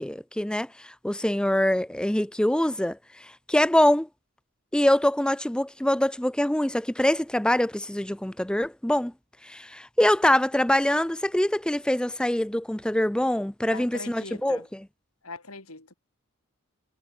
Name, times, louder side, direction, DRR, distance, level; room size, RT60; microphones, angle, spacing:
voice 1, 0.0-4.1 4.7-9.1 9.4-14.8, left 1 dB, 5° left, 0.5 m, -24 dB
voice 2, 13.6-14.7 15.2-15.9, left 3 dB, 80° left, 6.2 m, -41 dB
head